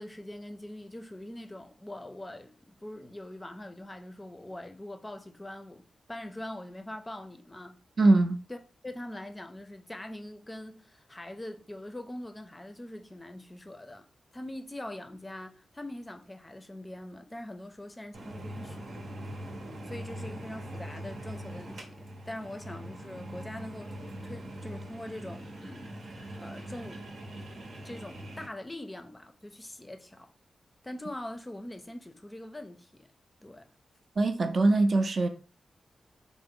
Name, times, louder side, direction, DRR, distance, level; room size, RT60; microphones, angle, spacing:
voice 1, 0.0-7.8 8.5-8.6 8.8-14.1 14.3-19.0 19.8-27.1 27.8-30.3 30.8-33.1 33.4-33.7, left 1 dB, 20° left, 0.5 m, -43 dB
voice 2, 8.0-8.4 34.2-35.3, right 2 dB, 55° right, 0.4 m, -22 dB
sound 1, 18.1-28.5, right 1 dB, 85° right, 0.8 m, -42 dB
3.7 x 2.0 x 3.6 m
cardioid pair, 85°, 0 cm